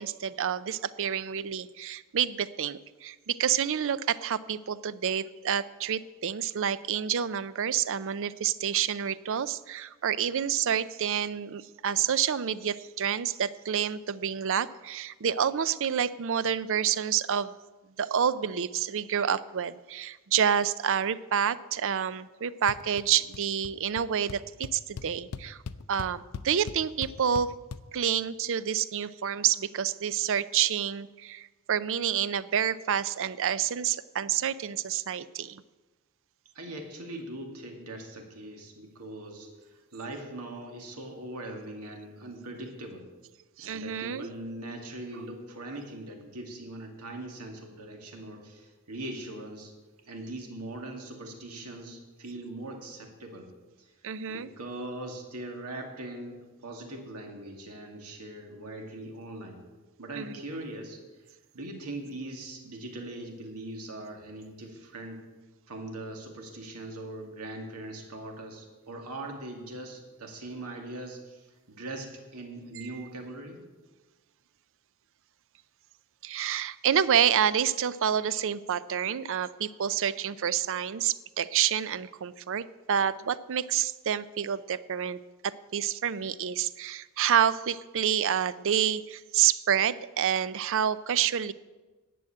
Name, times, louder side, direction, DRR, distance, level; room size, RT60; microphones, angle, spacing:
voice 1, 0.0-17.6 18.0-25.6 25.9-27.5 27.9-35.6 43.6-44.3 54.0-54.5 60.1-60.3 72.8-72.9 76.2-85.2 85.4-91.5, right 8 dB, 60° right, 16 dB, 0.5 m, -28 dB
sound 1, 22.7-23.1 23.3-23.7 24.0-24.1 24.3-27.8, left 5 dB, 85° left, 0.5 m, -39 dB
voice 2, 36.5-43.1 43.6-49.7 50.0-53.5 53.8-53.9 54.3-59.6 60.0-61.0 61.5-65.2 65.7-73.6, right 1 dB, 85° right, 2 dB, 2.3 m, -41 dB
11.0 x 7.8 x 8.8 m, 1.2 s
head